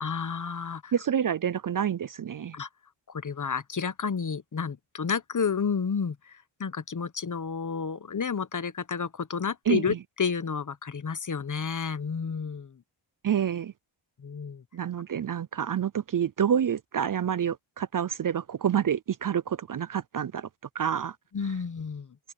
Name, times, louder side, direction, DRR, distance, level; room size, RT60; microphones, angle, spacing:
voice 1, 0.0-0.9 2.5-2.7 3.1-12.8 14.2-14.6 21.3-22.1, left 6 dB, 40° left, 1.0 m, -31 dB
voice 2, 0.9-2.6 9.7-10.0 13.2-13.7 14.7-20.5 20.7-21.2, right 8 dB, 45° right, 0.5 m, -28 dB
open air
wide cardioid pair, 90°, 48 cm